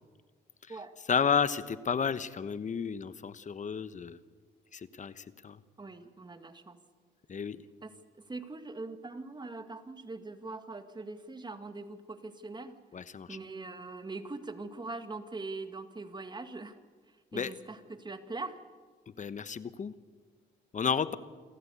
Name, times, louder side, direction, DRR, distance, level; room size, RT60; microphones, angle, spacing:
voice 1, 1.1-4.2 4.7-5.6 7.3-7.6 12.9-13.4 17.3-17.5 19.2-19.9 20.7-21.1, left 6 dB, 40° left, 14 dB, 1.1 m, -32 dB
voice 2, 5.8-6.8 7.8-7.9 8.2-12.8 13.3-16.7 17.3-18.6, right 3 dB, 20° right, 8 dB, 1.9 m, -42 dB
28.0 x 14.0 x 8.4 m, 1.5 s
cardioid pair, 90°, 20 cm